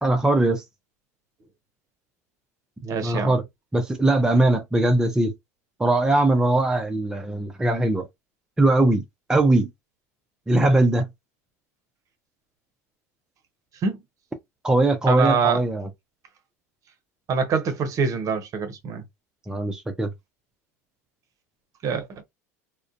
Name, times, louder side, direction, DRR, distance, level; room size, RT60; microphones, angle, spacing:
voice 1, 0.0-0.6 3.0-3.4 3.7-5.3 5.8-8.1 8.6-9.0 9.3-9.7 10.5-11.1 14.6-15.9 19.5-20.1, right 2 dB, 10° right, 0.5 m, -20 dB
voice 2, 2.8-3.3 13.8-14.0 15.1-15.6 17.3-19.0 21.8-22.2, right 5 dB, 40° right, 0.7 m, -24 dB
2.4 x 2.1 x 2.4 m
hypercardioid pair, 85°, 8 cm